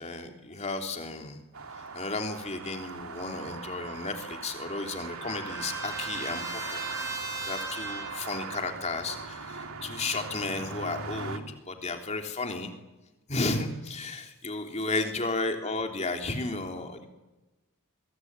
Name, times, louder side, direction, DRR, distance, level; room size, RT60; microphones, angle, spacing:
voice 1, 0.0-1.4 1.9-6.8 7.4-12.7 13.3-17.1, left 3 dB, 30° left, 4 dB, 3.3 m, -33 dB
sound 1, 1.5-11.4, right 4 dB, 85° right, 2.6 m, -40 dB
Trumpet, 4.3-8.3, right 3 dB, 15° right, 6.0 m, -38 dB
26.0 x 23.5 x 9.7 m, 1.0 s
head